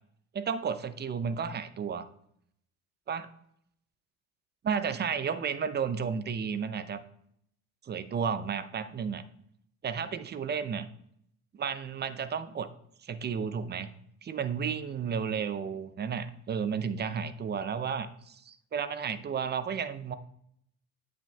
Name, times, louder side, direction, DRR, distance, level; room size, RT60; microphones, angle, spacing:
voice 1, 0.3-2.1 3.1-3.3 4.6-7.0 7.8-9.2 9.8-10.9 11.5-12.7 13.0-13.9 14.2-20.1, right 6 dB, 25° right, 12 dB, 0.6 m, -32 dB
9.1 x 7.4 x 2.3 m, 0.69 s
hypercardioid pair, 65°, 45 cm